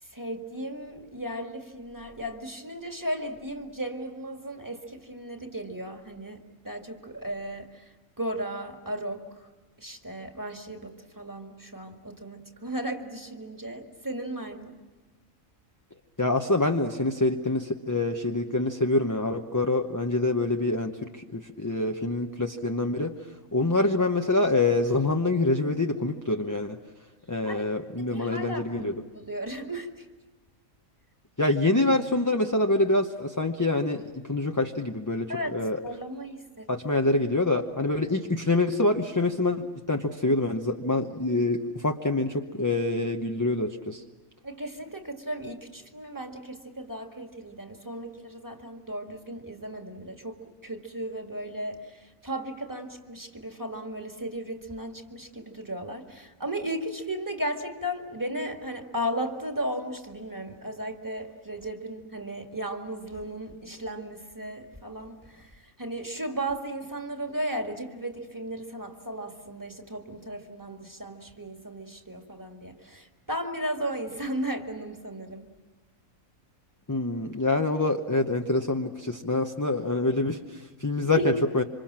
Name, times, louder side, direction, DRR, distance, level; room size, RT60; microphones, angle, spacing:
voice 1, 0.0-9.5 9.8-14.8 27.4-27.7 28.0-30.1 35.3-35.6 35.8-36.7 44.4-75.5 81.1-81.4, right 1 dB, 15° right, 4 dB, 1.9 m, -35 dB
voice 2, 16.2-23.1 23.5-26.8 27.3-28.9 31.4-35.8 36.7-44.0 76.9-81.6, left 2 dB, 15° left, 4 dB, 0.7 m, -26 dB
27.0 x 26.0 x 7.5 m, 1.2 s
omnidirectional pair, 1.4 m